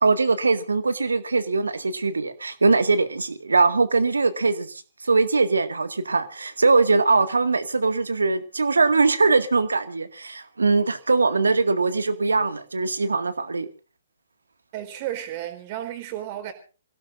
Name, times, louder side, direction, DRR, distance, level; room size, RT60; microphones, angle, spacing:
voice 1, 0.0-13.7, right 3 dB, 75° right, 2.0 m, -21 dB
voice 2, 14.7-16.5, right 12 dB, 35° right, 4.2 m, -33 dB
28.0 x 17.0 x 2.6 m
figure-of-eight pair, 125°, 0 cm